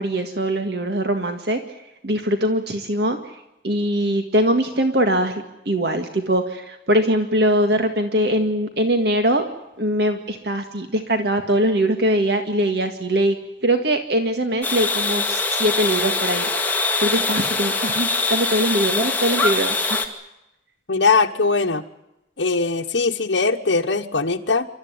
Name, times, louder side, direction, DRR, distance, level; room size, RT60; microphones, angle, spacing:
voice 1, 0.0-1.6 2.0-3.3 3.6-9.4 9.8-13.4 13.6-16.5 17.0-20.0, right 1 dB, 60° right, 6 dB, 1.9 m, -22 dB
sound 1, 14.6-20.1, left 3 dB, 10° left, 2.2 m, -23 dB
voice 2, 20.9-21.8 22.4-24.7, left 4 dB, 75° left, 1 dB, 1.2 m, -20 dB
28.5 x 13.5 x 9.6 m, 0.90 s
head